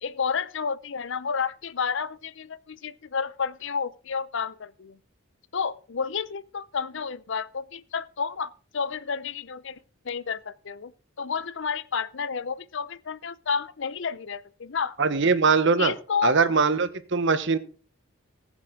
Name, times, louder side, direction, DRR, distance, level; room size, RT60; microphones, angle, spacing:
voice 1, 0.0-5.0 5.5-9.8 10.0-10.9 11.2-15.0 15.8-16.5, left 6 dB, 60° left, 0.6 m, -31 dB
voice 2, 15.0-15.9 16.2-17.6, right 4 dB, 60° right, 1.1 m, -21 dB
19.5 x 7.4 x 3.8 m
head